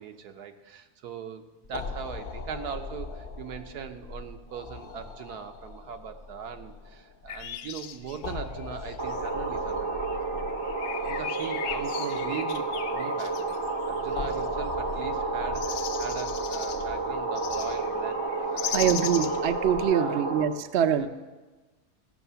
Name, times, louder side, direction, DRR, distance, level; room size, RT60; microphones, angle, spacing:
voice 1, 0.0-10.0 10.3-10.5 11.0-13.6 13.9-18.8 19.2-19.3 19.7-20.2 20.8-21.1, right 7 dB, 80° right, 6 dB, 1.4 m, -40 dB
sound 1, 1.6-19.8, left 4 dB, 55° left, 0.6 m, -42 dB
sound 2, 7.3-9.3 9.8-14.5 15.5-16.9 17.4-19.5, left 11 dB, 80° left, 1.2 m, -38 dB
sound 3, 9.0-20.5, right 3 dB, 20° right, 0.7 m, -31 dB
voice 2, 18.7-21.1, right 8 dB, 60° right, 9 dB, 0.7 m, -24 dB
15.5 x 6.4 x 6.8 m, 1.2 s
omnidirectional pair, 1.7 m